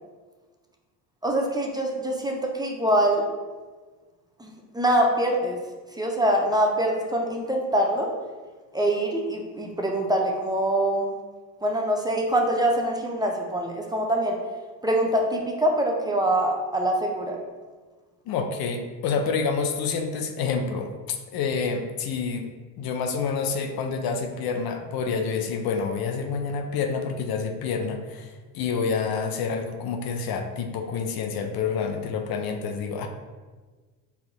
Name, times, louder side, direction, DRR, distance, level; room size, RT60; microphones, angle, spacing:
voice 1, 1.2-3.2 4.4-5.6 5.9-8.1 8.7-11.1 11.6-14.4 14.8-17.4, right 1 dB, 10° right, 0 dB, 0.6 m, -24 dB
voice 2, 18.3-20.9 21.3-33.1, left 5 dB, 60° left, 5 dB, 0.6 m, -28 dB
4.1 x 2.8 x 3.9 m, 1.4 s
supercardioid pair, 80°, 43 cm